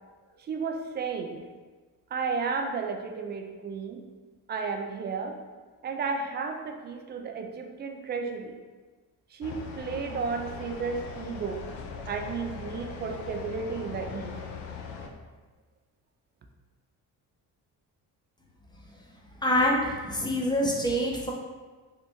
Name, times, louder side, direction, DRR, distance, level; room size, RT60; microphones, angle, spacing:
voice 1, 0.4-1.5 2.1-4.0 4.5-5.4 5.8-8.6 9.3-11.6 12.1-14.4, right 5 dB, 25° right, 4 dB, 0.3 m, -33 dB
sound 1, 9.4-15.1, left 5 dB, 70° left, 0.6 m, -40 dB
voice 2, 19.4-21.3, equal, 10° left, -2 dB, 0.7 m, -25 dB
3.2 x 2.5 x 3.0 m, 1.3 s
hypercardioid pair, 50°, 48 cm